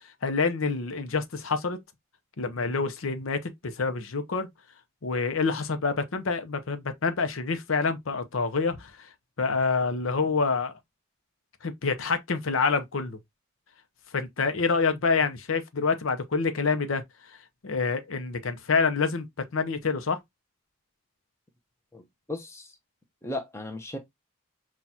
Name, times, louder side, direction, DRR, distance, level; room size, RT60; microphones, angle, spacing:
voice 1, 0.2-1.8 2.4-4.5 5.0-8.9 9.4-10.7 11.6-13.2 14.1-17.0 17.6-19.3 19.5-20.2, left 4 dB, 75° left, 0.7 m, -27 dB
voice 2, 21.9-22.8 23.2-24.0, left 2 dB, 15° left, 0.7 m, -36 dB
6.1 x 2.4 x 2.7 m
head